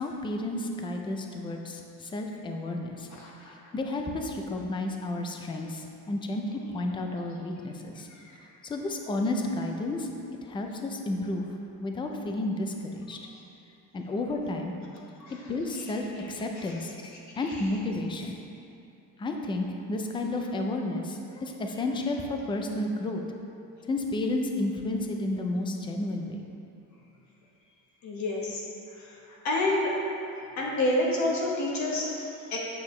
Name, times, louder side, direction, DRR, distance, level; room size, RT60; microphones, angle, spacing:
voice 1, 0.0-3.1 3.7-8.1 8.6-10.1 10.4-11.5 11.8-13.2 13.9-14.7 15.3-18.4 19.2-23.2 23.8-26.4, left 2 dB, 15° left, 2 dB, 0.4 m, -31 dB
voice 2, 3.1-3.5 8.1-8.4 13.3-13.4 15.2-15.4 16.7-16.8 17.3-17.5 28.0-28.6 28.9-30.0 30.6-32.6, left 1 dB, 45° left, -3 dB, 1.2 m, -29 dB
8.4 x 6.9 x 3.2 m, 2.7 s
cardioid pair, 160°, 38 cm